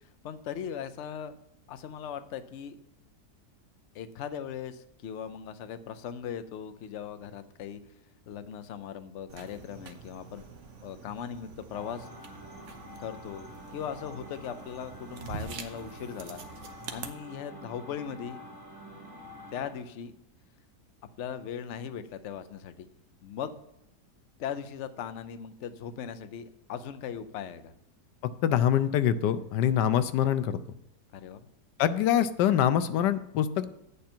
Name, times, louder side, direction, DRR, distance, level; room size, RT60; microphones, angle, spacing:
voice 1, 0.2-1.3 1.7-2.8 3.9-7.8 8.3-10.4 10.8-12.1 13.0-18.4 19.5-20.1 21.2-22.9 23.2-23.6 24.4-27.7 31.1-31.4, left 8 dB, 60° left, 10 dB, 0.8 m, -39 dB
sound 1, 9.3-17.1, right 5 dB, 50° right, 1.1 m, -45 dB
sound 2, 11.7-19.7, left 1 dB, 10° right, 3.7 m, -47 dB
voice 2, 28.2-30.6 31.8-33.7, left 10 dB, 90° left, 12 dB, 1.2 m, -25 dB
10.0 x 8.4 x 4.4 m, 0.88 s
omnidirectional pair, 1.8 m